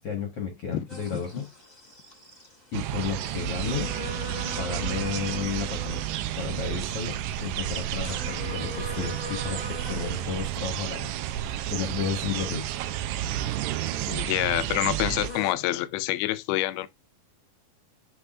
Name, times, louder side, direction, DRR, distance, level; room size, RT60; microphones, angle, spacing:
voice 1, 0.0-1.5 2.7-3.9 4.5-6.0 6.3-11.2 11.7-12.7, left 6 dB, 55° left, 1.8 m, -32 dB
sound 1, 0.9-15.5, left 1 dB, 15° left, 1.9 m, -43 dB
sound 2, 2.7-15.3, right 12 dB, 85° right, 1.8 m, -31 dB
voice 2, 14.1-16.9, left 16 dB, 90° left, 2.5 m, -27 dB
8.3 x 5.8 x 2.5 m
omnidirectional pair, 4.3 m